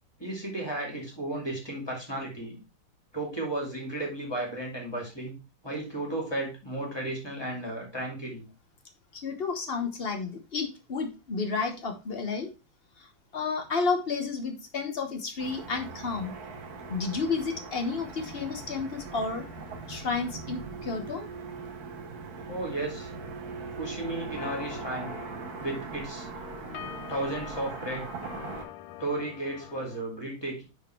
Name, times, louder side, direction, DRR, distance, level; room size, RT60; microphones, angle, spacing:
voice 1, 0.2-2.6 3.1-5.3 5.6-8.4 22.5-23.1 23.8-25.1 25.6-26.3 27.1-28.1 29.0-30.6, right 1 dB, 10° left, 0 dB, 2.3 m, -34 dB
voice 2, 9.1-12.5 13.0-13.1 13.3-16.3 16.9-19.5 19.9-21.3, left 4 dB, 40° left, 5 dB, 0.8 m, -31 dB
Car passing by / Traffic noise roadway noise, 15.4-28.7, right 4 dB, 55° right, 1.6 m, -40 dB
sound 1, 19.3-21.4 24.1-30.0, left 12 dB, 80° left, 1.4 m, -46 dB
6.3 x 4.3 x 4.4 m, 0.29 s
omnidirectional pair, 2.2 m